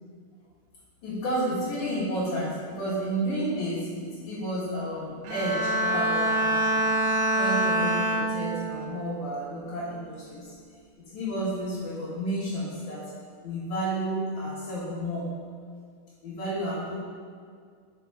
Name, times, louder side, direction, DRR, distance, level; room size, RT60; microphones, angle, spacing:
voice 1, 1.0-6.9 7.4-10.5 11.0-13.1 13.4-15.3 16.2-17.0, right 1 dB, 60° left, -11 dB, 2.5 m, -31 dB
Bowed string instrument, 5.2-8.8 9.3-9.7, right 1 dB, 80° right, 2.7 m, -25 dB
6.8 x 5.7 x 3.4 m, 2.1 s
omnidirectional pair, 4.9 m